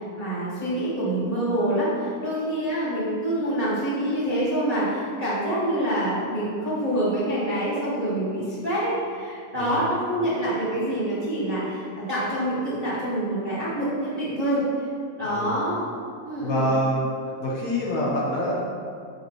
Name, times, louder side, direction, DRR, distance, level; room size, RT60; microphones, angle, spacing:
voice 1, 0.2-14.6 15.2-15.8 16.2-16.7, right 1 dB, 15° right, -10 dB, 1.5 m, -26 dB
voice 2, 16.4-17.1 17.4-18.5, equal, 65° left, -5 dB, 2.0 m, -25 dB
9.3 x 8.3 x 3.1 m, 2.3 s
omnidirectional pair, 3.9 m